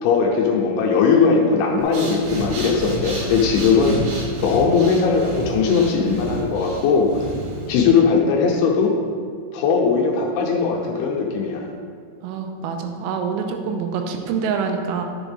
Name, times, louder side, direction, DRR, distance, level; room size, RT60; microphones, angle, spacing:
voice 1, 0.0-4.0 4.4-7.1 7.7-8.9 9.5-11.7, left 5 dB, 75° left, -1 dB, 3.1 m, -19 dB
Breathing, 1.8-7.9, right 1 dB, 65° right, 2.2 m, -30 dB
voice 2, 12.2-15.0, right 6 dB, 90° right, 4 dB, 3.5 m, -26 dB
11.0 x 7.2 x 3.5 m, 2.2 s
omnidirectional pair, 5.9 m